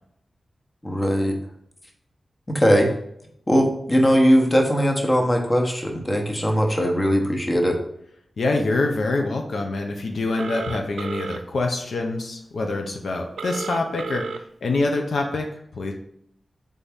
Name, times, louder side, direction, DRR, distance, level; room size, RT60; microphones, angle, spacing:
voice 1, 0.8-1.3 2.5-2.9 3.5-7.8, equal, 25° left, 2 dB, 0.9 m, -20 dB
voice 2, 8.4-15.9, left 2 dB, 80° left, 2 dB, 0.5 m, -25 dB
Telephone, 10.4-11.4 13.4-14.4, right 5 dB, 85° right, 0.3 m, -32 dB
4.0 x 3.4 x 3.5 m, 0.72 s
cardioid pair, 50°, 0 cm